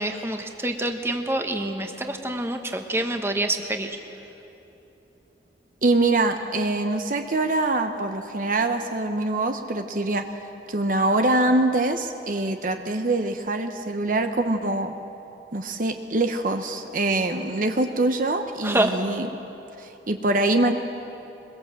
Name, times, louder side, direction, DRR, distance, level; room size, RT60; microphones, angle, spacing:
voice 1, 0.0-4.0 18.6-18.9, right 1 dB, 15° right, 5 dB, 1.3 m, -26 dB
voice 2, 5.8-10.2 10.7-14.9 15.5-19.3 19.8-20.7, right 2 dB, 50° right, 6 dB, 0.9 m, -24 dB
22.5 x 22.0 x 7.6 m, 3.0 s
head